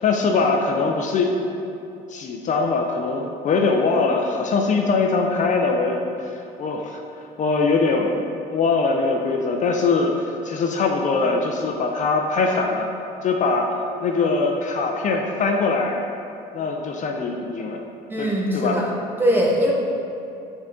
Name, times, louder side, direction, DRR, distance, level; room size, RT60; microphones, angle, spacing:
voice 1, 0.0-1.3 2.1-6.3 6.6-7.0 7.4-8.2 8.5-12.9 13.2-13.8 14.0-16.0 16.5-17.8 18.2-18.8, left 4 dB, 45° left, 2 dB, 0.5 m, -22 dB
voice 2, 18.1-18.9 19.2-19.7, equal, 10° right, -3 dB, 1.0 m, -21 dB
7.1 x 3.8 x 3.6 m, 2.7 s
cardioid pair, 110°, 17 cm